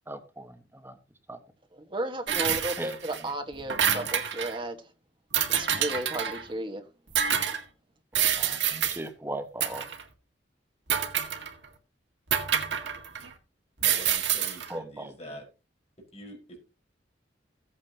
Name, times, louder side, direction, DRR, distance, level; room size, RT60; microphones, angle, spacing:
voice 1, 0.1-1.0 1.3-1.4 2.8-3.0 8.2-9.9 14.7-15.4, right 1 dB, 10° right, 1.1 m, -39 dB
voice 2, 1.9-4.8 5.5-6.8, right 1 dB, 25° right, 1.5 m, -34 dB
sound 1, 2.3-3.2 3.5-4.6 5.3-6.4 7.1-7.6 8.1-9.0 9.6-10.0 10.9-11.6 12.3-13.3 13.8-14.7, right 9 dB, 70° right, 1.8 m, -27 dB
voice 3, 13.8-15.4 16.1-16.6, equal, 35° left, 5.0 m, -45 dB
15.0 x 8.9 x 2.9 m
head